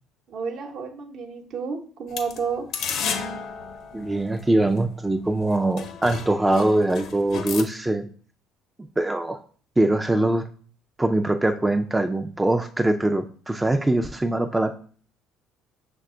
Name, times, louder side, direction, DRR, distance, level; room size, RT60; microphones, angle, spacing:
voice 1, 0.3-2.6, right 5 dB, 60° right, 3 dB, 0.8 m, -31 dB
sound 1, 2.1-4.8 5.4-5.5 5.8-7.6, left 6 dB, 60° left, 0.6 m, -33 dB
voice 2, 3.9-8.1 9.0-9.4 9.8-10.5 11.0-14.7, right 1 dB, 10° right, 7 dB, 0.4 m, -22 dB
5.9 x 2.2 x 3.7 m, 0.44 s
supercardioid pair, 75°, 0 cm